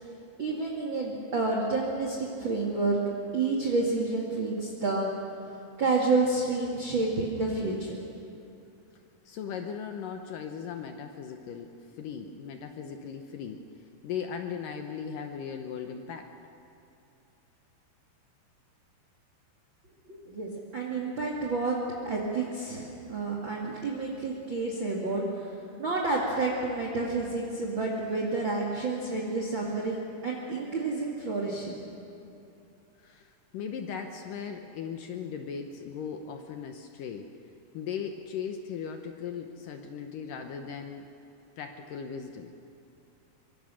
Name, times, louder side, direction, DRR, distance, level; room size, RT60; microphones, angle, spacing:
voice 1, 0.4-3.0 3.3-5.1 5.5-8.3 20.1-21.8 22.0-31.8, right 3 dB, 35° right, -2 dB, 2.2 m, -30 dB
voice 2, 9.3-13.7 14.0-16.3 33.0-37.4 37.7-41.1 41.6-42.5, left 7 dB, 70° left, 5 dB, 2.2 m, -38 dB
24.0 x 24.0 x 6.3 m, 2.6 s
omnidirectional pair, 4.7 m